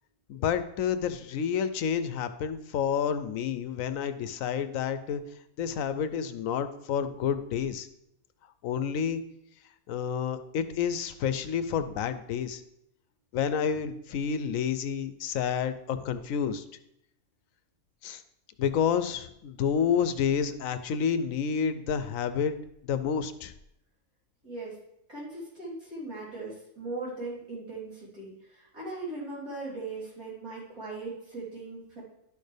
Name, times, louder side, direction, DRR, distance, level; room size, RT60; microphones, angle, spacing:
voice 1, 0.3-5.2 5.6-7.9 8.6-9.2 9.9-12.6 13.3-16.6 18.0-18.2 18.6-22.5 22.8-23.5, left 7 dB, 75° left, 11 dB, 1.0 m, -29 dB
voice 2, 24.4-24.8 25.1-32.0, right 3 dB, 85° right, -9 dB, 4.1 m, -39 dB
11.5 x 6.4 x 3.4 m, 0.78 s
omnidirectional pair, 1.4 m